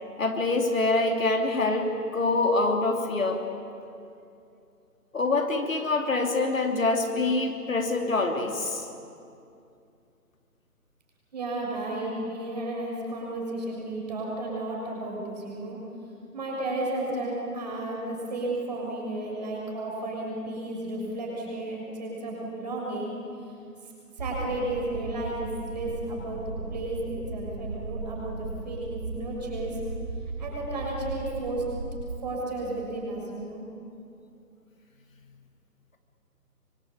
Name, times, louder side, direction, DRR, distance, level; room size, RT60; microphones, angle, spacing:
voice 1, 0.2-3.4 5.1-8.9, left 3 dB, 55° left, 3 dB, 3.0 m, -25 dB
voice 2, 11.3-15.8 16.3-23.1 23.8-29.8 30.4-31.7 32.2-33.6, right 2 dB, 25° right, -2 dB, 6.8 m, -33 dB
sound 1, 24.2-32.2, right 3 dB, 50° right, 5.4 m, -36 dB
25.5 x 25.0 x 8.8 m, 2.6 s
hypercardioid pair, 175°, 48 cm